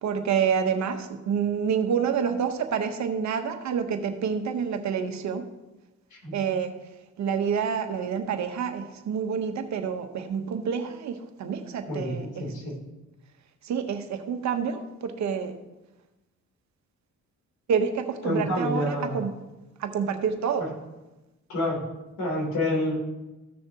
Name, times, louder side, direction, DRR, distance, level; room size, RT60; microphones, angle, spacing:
voice 1, 0.0-5.5 6.3-6.7 7.2-12.5 13.6-15.5 17.7-19.4 19.8-20.7, right 7 dB, 65° right, 7 dB, 1.1 m, -28 dB
voice 2, 11.9-12.7 18.2-19.2 20.6-20.7 21.5-21.8 22.2-22.9, left 1 dB, 75° left, -2 dB, 3.3 m, -28 dB
15.0 x 6.5 x 2.9 m, 1.0 s
cardioid pair, 90°, 30 cm